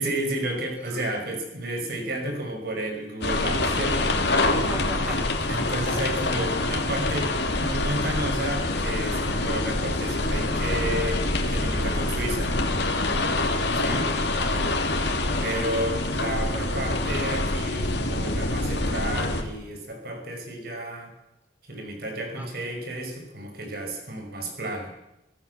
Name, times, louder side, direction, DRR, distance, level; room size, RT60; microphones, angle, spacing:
voice 1, 0.0-4.2 5.1-5.2 5.5-12.5 13.7-14.1 15.4-21.1 21.7-24.9, right 1 dB, 55° right, 3 dB, 5.9 m, -32 dB
sound 1, 3.2-19.4, left 2 dB, 60° left, 3.1 m, -26 dB
voice 2, 4.7-5.2 13.9-14.7 15.1-15.4 22.2-22.5, equal, 10° right, 2 dB, 4.4 m, -39 dB
25.5 x 17.0 x 7.1 m, 0.91 s
head